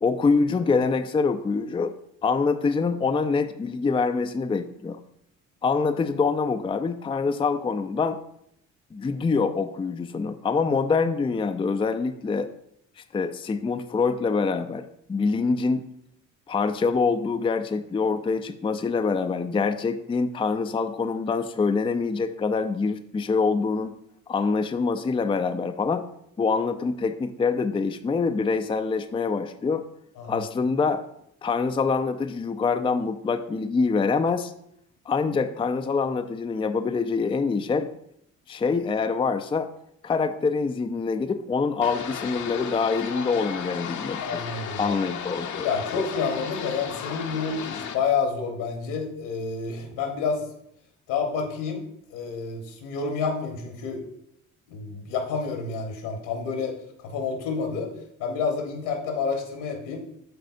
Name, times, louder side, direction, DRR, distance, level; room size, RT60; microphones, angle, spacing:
voice 1, 0.0-1.9 2.2-5.0 5.6-8.2 8.9-12.5 13.1-14.8 15.1-15.8 16.5-23.9 24.3-26.0 26.4-29.8 30.3-31.0 31.4-34.5 35.1-37.9 38.5-39.7 40.0-44.4 44.8-45.7 45.9-46.0, left 4 dB, 15° left, 8 dB, 0.4 m, -25 dB
voice 2, 30.2-30.5 44.2-45.0 45.6-50.4 51.1-51.8 52.1-54.0 54.7-57.9 58.2-60.0, left 5 dB, 70° left, 3 dB, 1.5 m, -29 dB
sound 1, 41.8-48.0, left 7 dB, 50° left, 0.8 m, -34 dB
12.0 x 4.1 x 2.6 m, 0.74 s
hypercardioid pair, 45°, 39 cm